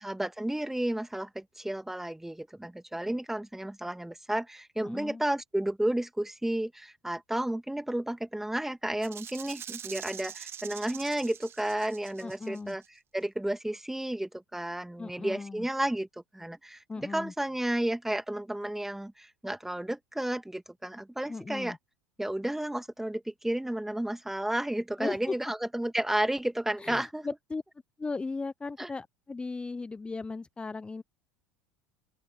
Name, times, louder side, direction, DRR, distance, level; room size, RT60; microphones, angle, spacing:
voice 1, 0.0-12.8 13.1-16.1 16.3-21.8 22.2-27.3 28.8-28.9, right 1 dB, 5° right, 2.1 m, -32 dB
voice 2, 4.8-5.2 12.2-12.8 15.0-15.7 16.9-17.3 21.3-21.8 25.0-25.4 26.8-27.6 28.0-31.0, left 3 dB, 15° left, 0.9 m, -37 dB
Rattle (instrument), 9.0-12.9, right 9 dB, 35° right, 2.1 m, -44 dB
open air
figure-of-eight pair, 70°, 7 cm